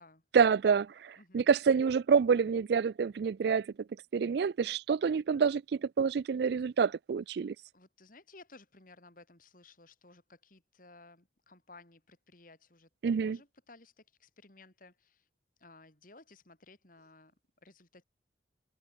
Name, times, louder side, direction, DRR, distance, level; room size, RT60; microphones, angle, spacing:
voice 1, 0.3-3.7 4.1-7.5 13.0-13.4, right 6 dB, 60° right, 0.3 m, -27 dB
voice 2, 1.2-1.5 7.4-15.3 15.6-17.3 17.6-18.0, left 3 dB, 45° left, 2.6 m, -57 dB
open air
head